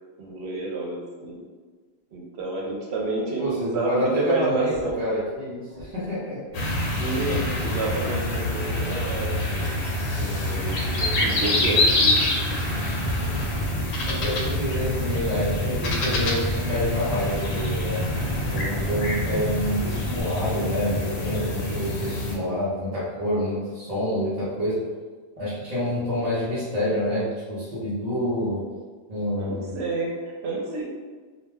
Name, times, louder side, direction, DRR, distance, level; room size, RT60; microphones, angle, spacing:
voice 1, 0.2-1.4 2.1-5.0 7.0-9.9 10.2-12.8 29.4-30.8, right 3 dB, 80° right, -2 dB, 0.9 m, -30 dB
voice 2, 3.4-6.6 13.0-13.6 14.1-18.0 18.5-24.8 25.4-28.6 29.1-29.7, left 1 dB, 45° right, -10 dB, 0.7 m, -28 dB
Engine starting, 4.7-5.0 5.7-6.0 6.4-6.9 7.4-7.9 8.3-8.5 8.8-20.2, equal, 45° left, 0.3 m, -35 dB
sound 1, 6.5-22.4, left 1 dB, 80° left, 0.8 m, -26 dB
2.3 x 2.2 x 3.2 m, 1.4 s
omnidirectional pair, 1.1 m